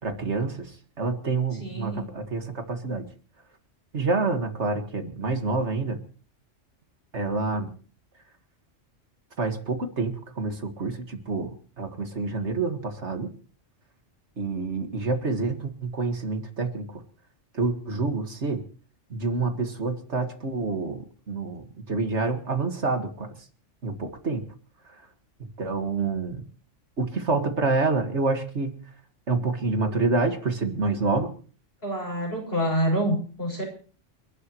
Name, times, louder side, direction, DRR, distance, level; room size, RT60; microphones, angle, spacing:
voice 1, 0.0-3.1 3.9-6.0 7.1-7.7 9.4-13.3 14.4-17.0 17.5-18.6 19.1-23.3 23.8-24.5 25.4-26.5 27.0-28.8 29.3-31.3, right 3 dB, 60° right, 6 dB, 2.1 m, -28 dB
voice 2, 1.6-2.1 31.8-33.6, equal, 50° left, 1 dB, 7.1 m, -27 dB
29.0 x 12.0 x 3.1 m, 0.40 s
omnidirectional pair, 1.3 m